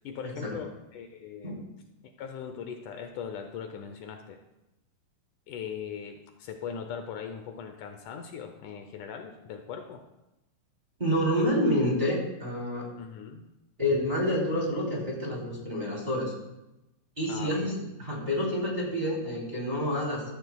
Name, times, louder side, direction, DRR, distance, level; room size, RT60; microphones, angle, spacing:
voice 1, 0.0-1.7 2.2-4.4 5.5-10.0 13.0-13.4 17.3-17.8, left 7 dB, 75° left, 6 dB, 2.1 m, -40 dB
voice 2, 11.0-12.9 13.8-16.3 17.2-20.2, equal, 15° right, -4 dB, 2.7 m, -28 dB
15.0 x 13.5 x 2.3 m, 0.94 s
omnidirectional pair, 3.8 m